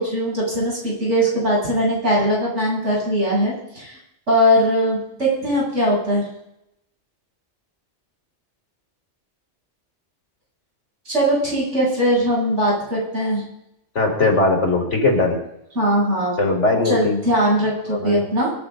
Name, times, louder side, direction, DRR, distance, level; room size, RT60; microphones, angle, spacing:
voice 1, 0.0-4.0 4.3-6.3 11.1-13.4 15.8-16.4 16.8-18.5, equal, 85° right, -4 dB, 8.2 m, -20 dB
voice 2, 14.0-15.4 16.4-17.1 17.9-18.2, left 2 dB, 85° left, 1 dB, 3.9 m, -19 dB
24.5 x 11.5 x 4.0 m, 0.83 s
omnidirectional pair, 1.2 m